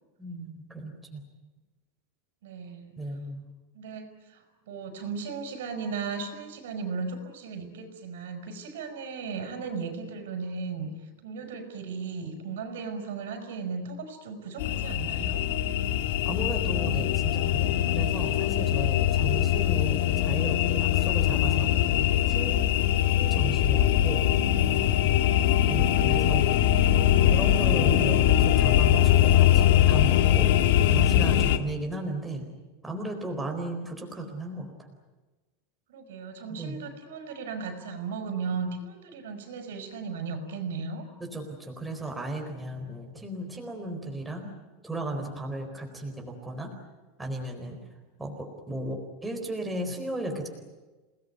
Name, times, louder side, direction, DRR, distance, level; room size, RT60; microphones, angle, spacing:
voice 1, 0.2-1.2 3.0-3.4 16.2-22.6 23.1-24.3 25.7-26.4 27.2-30.5 30.9-32.4 32.8-34.7 36.5-36.8 41.2-44.5 44.8-46.7 47.2-47.8 48.2-50.5, right 1 dB, 5° right, 1 dB, 4.2 m, -35 dB
voice 2, 2.4-2.9 3.7-10.9 11.2-15.4 35.9-41.0, right 5 dB, 90° right, 7 dB, 6.1 m, -36 dB
sound 1, 14.6-31.6, left 11 dB, 65° left, 1.8 m, -22 dB
28.0 x 19.5 x 9.4 m, 1.2 s
supercardioid pair, 165°, 0 cm